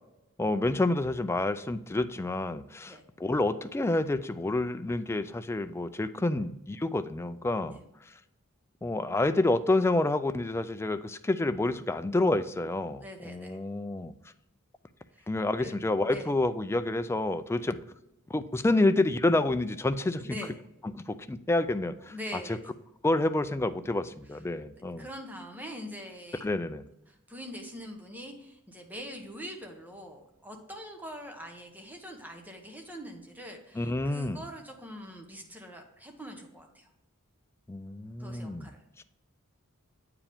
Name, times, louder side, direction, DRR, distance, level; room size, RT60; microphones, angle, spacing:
voice 1, 0.4-7.8 8.8-14.1 15.3-17.8 18.3-20.3 21.1-22.6 23.0-25.1 26.4-26.8 33.8-34.4 37.7-38.7, left 2 dB, 10° left, 11 dB, 0.3 m, -28 dB
voice 2, 13.0-13.6 15.1-15.3 15.6-15.7 16.1-16.3 20.2-20.6 22.1-22.7 24.3-24.4 25.0-26.5 27.1-36.9 38.2-39.0, equal, 10° right, 3 dB, 1.0 m, -43 dB
8.7 x 4.8 x 3.5 m, 0.88 s
head